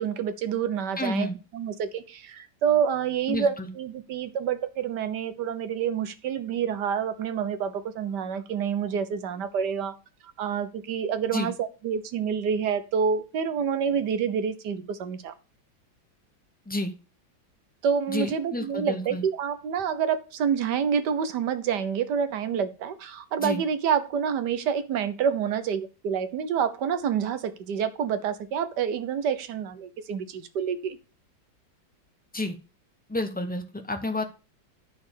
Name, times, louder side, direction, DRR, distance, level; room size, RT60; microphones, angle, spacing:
voice 1, 0.0-9.9 10.4-15.3 17.8-31.0, right 7 dB, 65° right, 11 dB, 1.5 m, -28 dB
voice 2, 1.0-1.4 3.3-3.7 11.3-11.5 16.7-16.9 18.1-19.2 23.4-23.6 32.3-32.5 33.1-34.2, left 2 dB, 10° left, 6 dB, 0.4 m, -30 dB
10.5 x 4.3 x 6.9 m, 0.33 s
omnidirectional pair, 2.1 m